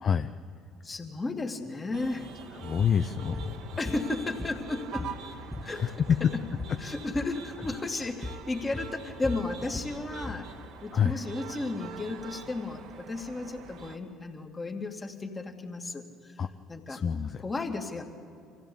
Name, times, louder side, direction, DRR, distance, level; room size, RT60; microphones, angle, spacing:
voice 1, 0.8-2.3 3.8-5.1 5.6-6.4 6.8-10.5 10.8-16.4 16.7-17.0 17.4-18.1, left 2 dB, 25° left, 4 dB, 2.5 m, -34 dB
sound 1, 1.9-14.0, right 6 dB, 65° right, 1.7 m, -45 dB
voice 2, 2.6-3.5 5.7-6.2 10.9-11.2 16.4-16.5 16.9-17.4, left 7 dB, 45° left, 8 dB, 0.7 m, -27 dB
sound 2, 3.3-3.5 3.9-4.7 5.0-6.8 7.1-7.3 7.6-7.8 8.2-8.4 8.7-10.4, left 3 dB, ahead, 1.7 m, -38 dB
25.0 x 16.0 x 8.7 m, 2.5 s
hypercardioid pair, 60°, 0 cm